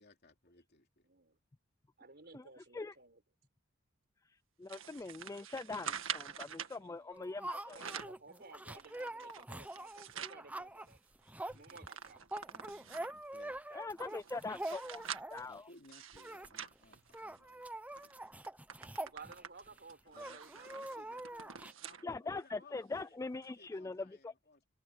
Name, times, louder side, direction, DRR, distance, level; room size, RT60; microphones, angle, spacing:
voice 1, 0.0-1.1 12.4-13.6 15.4-17.7 20.1-24.6, left 2 dB, 50° left, 3.1 m, -62 dB
voice 2, 1.0-1.4 2.0-3.2 6.8-7.3 7.5-11.0 11.5-12.2 19.0-21.2, right 3 dB, 55° right, 4.2 m, -56 dB
voice 3, 4.6-7.9 13.7-15.0 15.3-15.6 22.0-24.3, left 3 dB, 15° left, 0.3 m, -42 dB
sound 1, 4.7-6.8 7.5-8.2 8.7-10.4 10.9-11.0 11.2-13.2 13.8-17.6 18.0-18.1 18.4-22.1 22.5-22.6 23.4-23.5, right 8 dB, 80° right, 1.8 m, -46 dB
sound 2, 7.1-15.6 16.1-16.5 16.8-16.9 17.1-19.7 20.2-21.7, right 1 dB, 5° right, 0.8 m, -45 dB
head